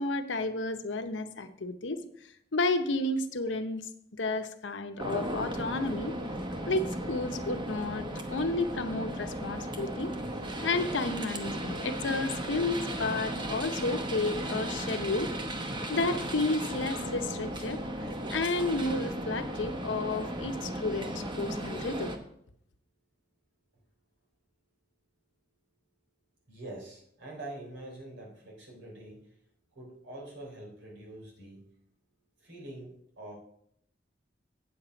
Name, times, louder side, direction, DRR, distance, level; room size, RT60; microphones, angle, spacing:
voice 1, 0.0-2.0 2.5-6.2 6.7-10.1 10.6-15.3 15.9-17.8 18.3-22.1, left 2 dB, 90° left, 8 dB, 0.8 m, -32 dB
sound 1, 5.0-22.2, right 1 dB, 25° right, 0.9 m, -36 dB
voice 2, 26.5-29.3 29.7-31.6 32.4-33.3, right 1 dB, 85° right, -2 dB, 3.8 m, -45 dB
8.5 x 7.4 x 5.1 m, 0.70 s
head